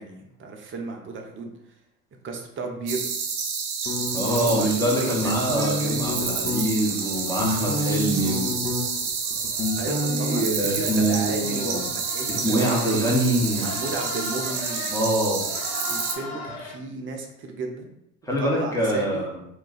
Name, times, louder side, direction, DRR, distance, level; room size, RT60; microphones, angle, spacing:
voice 1, 0.0-1.5 2.2-3.1 4.2-5.6 9.8-13.2 13.6-14.8 15.9-17.9 18.4-19.3, right 3 dB, 25° right, 2 dB, 0.6 m, -34 dB
sound 1, 2.9-16.2, right 5 dB, 70° right, 0.7 m, -29 dB
sound 2, 3.9-4.7 5.2-6.6 7.1-9.1 9.3-10.4, left 2 dB, 25° left, 0.8 m, -28 dB
voice 2, 4.1-8.6 10.1-11.9 12.3-13.8 14.9-15.5 18.2-19.4, right 1 dB, 5° left, -3 dB, 1.0 m, -24 dB
sound 3, 5.3-16.7, left 3 dB, 65° left, 0.9 m, -41 dB
2.4 x 2.2 x 3.9 m, 0.81 s
hypercardioid pair, 75°, 47 cm